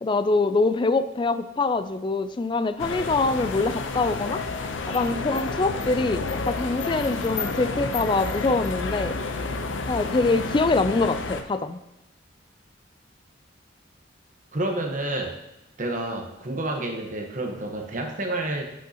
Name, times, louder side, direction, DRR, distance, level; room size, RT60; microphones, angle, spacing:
voice 1, 0.0-4.4 4.9-9.2 9.9-11.8, left 3 dB, 25° left, 12 dB, 0.4 m, -24 dB
sound 1, 2.8-11.4, left 3 dB, 85° left, 0.7 m, -30 dB
voice 2, 14.5-15.4 15.8-18.6, right 1 dB, 40° right, 2 dB, 1.1 m, -29 dB
11.0 x 6.3 x 2.9 m, 0.92 s
head